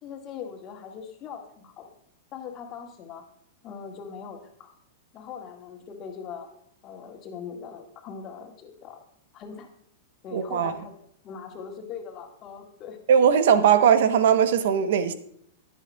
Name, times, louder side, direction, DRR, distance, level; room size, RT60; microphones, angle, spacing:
voice 1, 0.0-1.9 2.3-3.2 3.6-4.7 5.1-6.5 6.8-9.0 9.3-9.7 10.2-10.9 11.2-13.0, left 7 dB, 40° left, 1.9 m, -40 dB
voice 2, 10.3-10.7 13.1-15.1, right 8 dB, 70° right, 0.9 m, -19 dB
11.0 x 10.5 x 2.3 m
hypercardioid pair, 115°, 0 cm